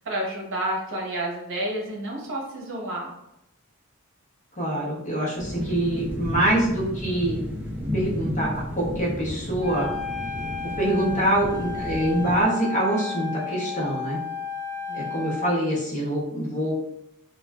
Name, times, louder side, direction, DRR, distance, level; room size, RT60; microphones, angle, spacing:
voice 1, 0.0-3.1 14.9-15.2, right 1 dB, 60° right, -2 dB, 0.8 m, -30 dB
voice 2, 4.6-7.4 7.9-8.5 8.8-9.9 10.8-14.2 14.9-16.9, right 1 dB, 35° left, -6 dB, 0.9 m, -25 dB
sound 1, 5.4-12.4, left 1 dB, 10° right, 0.4 m, -33 dB
Wind instrument woodwind instrument, 9.6-15.6, left 6 dB, 5° left, 0.9 m, -33 dB
3.1 x 2.2 x 2.3 m, 0.83 s
head